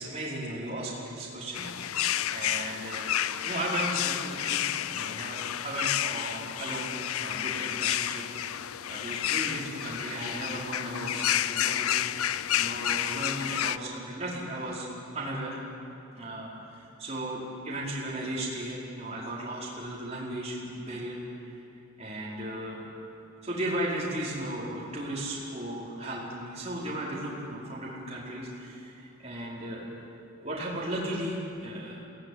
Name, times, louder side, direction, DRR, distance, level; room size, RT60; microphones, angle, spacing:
voice 1, 0.0-2.0 2.3-3.0 3.4-6.9 7.2-12.2 12.5-14.9 15.1-15.6 16.1-21.2 22.0-22.8 23.4-29.8 30.4-32.0, right 1 dB, 30° right, -6 dB, 5.0 m, -36 dB
sound 1, 1.5-13.8, left 11 dB, 90° left, 0.5 m, -30 dB
22.5 x 18.5 x 9.8 m, 2.7 s
head